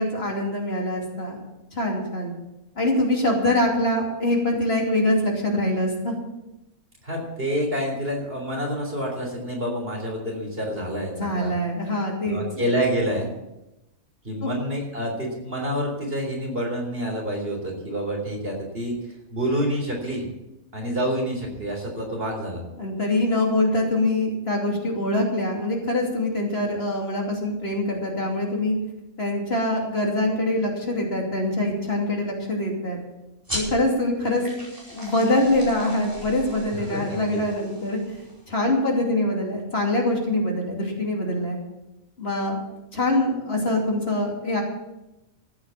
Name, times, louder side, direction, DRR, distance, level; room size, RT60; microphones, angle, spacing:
voice 1, 0.0-1.4 1.8-2.3 2.8-6.2 11.1-12.4 22.8-28.7 29.2-33.0 33.5-34.4 34.9-38.0 38.5-41.6 42.2-42.6 42.9-44.6, left 1 dB, 45° left, 0 dB, 3.0 m, -24 dB
voice 2, 7.0-11.5 12.2-13.3 14.2-20.2 20.7-22.6 36.7-37.4, equal, 45° right, 0 dB, 3.9 m, -28 dB
sound 1, 33.4-38.5, equal, 15° right, 5.0 m, -37 dB
14.0 x 8.7 x 7.3 m, 0.93 s
omnidirectional pair, 1.4 m